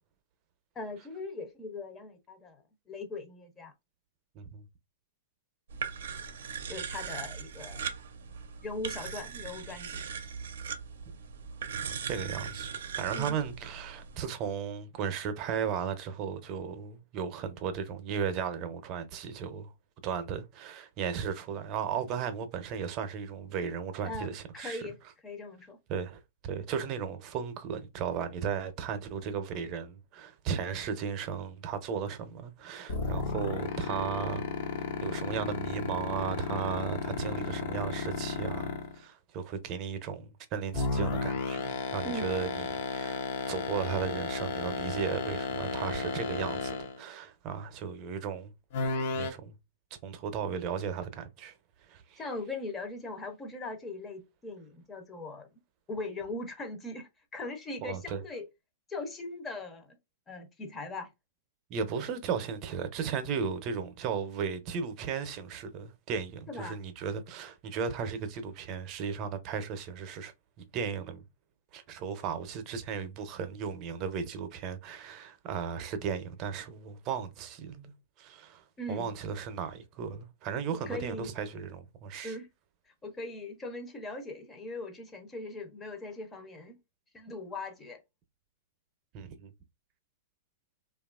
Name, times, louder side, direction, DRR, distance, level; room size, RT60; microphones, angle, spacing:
voice 1, 0.8-3.7 6.7-7.9 8.6-10.0 13.1-13.4 24.0-25.0 25.2-25.8 42.0-42.4 52.2-55.5 55.9-58.5 58.9-60.0 60.3-61.1 66.5-66.8 78.8-79.1 80.9-81.3 82.2-82.5 83.0-86.8 87.1-88.0, left 2 dB, 15° left, 0.6 m, -40 dB
sound 1, 5.7-14.2, right 6 dB, 80° right, 0.5 m, -39 dB
voice 2, 12.1-12.7 13.0-19.7 20.0-24.8 25.9-34.5 35.0-43.2 43.5-48.5 49.1-49.6 50.0-51.5 51.9-52.2 57.8-58.2 61.7-71.2 71.7-82.4 89.1-89.5, right 7 dB, 40° right, 0.6 m, -35 dB
sound 2, 32.9-39.0 40.7-47.0 48.7-49.3, left 4 dB, 60° left, 0.6 m, -32 dB
2.8 x 2.4 x 2.3 m
hypercardioid pair, 130°, 0 cm